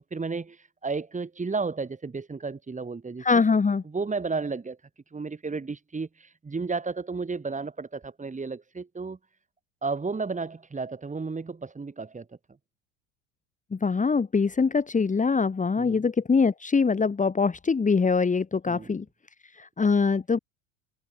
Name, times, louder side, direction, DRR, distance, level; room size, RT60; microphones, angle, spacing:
voice 1, 0.0-3.5 3.8-4.8 5.1-9.2 9.8-12.3 15.8-16.1 18.7-19.0, right 4 dB, 15° right, 6.1 m, -33 dB
voice 2, 3.2-3.8 13.7-19.0 19.6-20.4, left 5 dB, 20° left, 2.6 m, -23 dB
hypercardioid pair, 75°, 42 cm